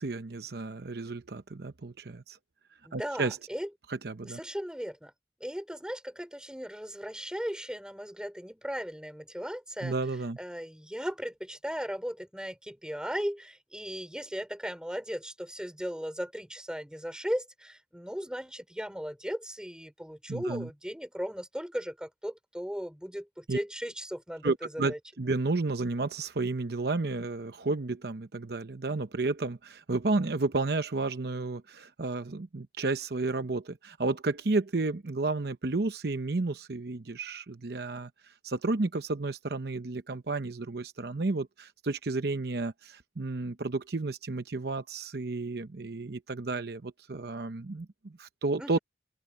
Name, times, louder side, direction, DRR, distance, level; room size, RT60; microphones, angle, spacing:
voice 1, 0.0-2.4 2.9-3.4 3.9-4.4 9.8-10.4 20.3-20.7 23.5-23.6 24.4-38.1 38.4-48.8, right 3 dB, 60° right, 0.8 m, -32 dB
voice 2, 2.8-3.7 4.2-5.1 5.4-9.9 10.4-25.0 48.6-48.8, equal, 5° right, 3.1 m, -37 dB
open air
head